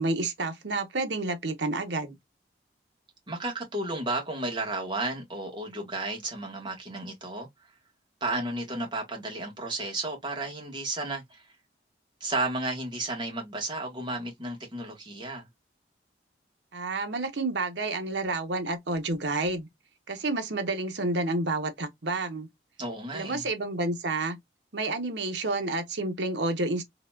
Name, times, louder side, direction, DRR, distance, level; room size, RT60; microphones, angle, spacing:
voice 1, 0.0-2.1 16.7-19.7 20.1-22.5 23.1-24.4 24.7-26.8, right 2 dB, 85° right, 0.9 m, -29 dB
voice 2, 3.3-7.5 8.2-11.4 12.2-15.4 22.8-23.4, right 2 dB, 25° right, 1.4 m, -33 dB
3.9 x 2.9 x 2.3 m
head